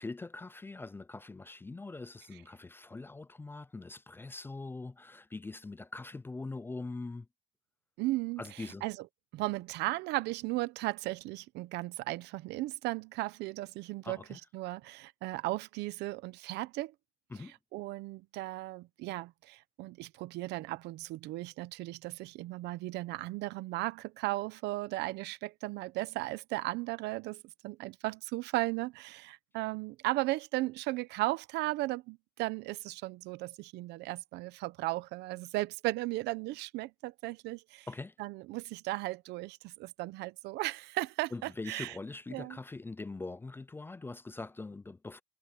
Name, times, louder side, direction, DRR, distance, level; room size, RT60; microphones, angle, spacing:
voice 1, 0.0-7.3 8.4-8.8 14.0-14.4 17.3-17.5 37.9-38.1 41.3-45.2, left 3 dB, 15° left, 0.4 m, -42 dB
voice 2, 8.0-9.1 9.3-16.9 17.4-37.9 38.2-42.0 42.3-42.6, right 19 dB, 85° right, 0.8 m, -36 dB
cardioid pair, 110°, 17 cm